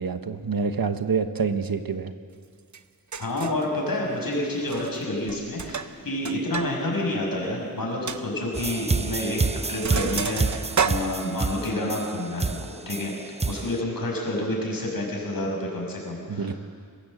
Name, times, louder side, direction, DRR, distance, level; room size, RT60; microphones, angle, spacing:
voice 1, 0.0-2.1 16.3-16.6, right 5 dB, 75° right, 9 dB, 1.3 m, -27 dB
Sink (filling or washing), 2.7-2.8 3.1-3.7 4.6-5.0 5.3-6.7 7.0-7.1 7.5-7.6 8.1-8.2 9.1-9.3 9.6-11.7, right 6 dB, 50° right, 0.9 m, -30 dB
voice 2, 3.2-13.1 13.4-16.5, left 1 dB, 70° left, -1 dB, 6.4 m, -29 dB
sound 1, 8.5-13.8, right 4 dB, 20° right, 0.5 m, -28 dB
26.0 x 15.0 x 7.8 m, 2.1 s
wide cardioid pair, 85°, 36 cm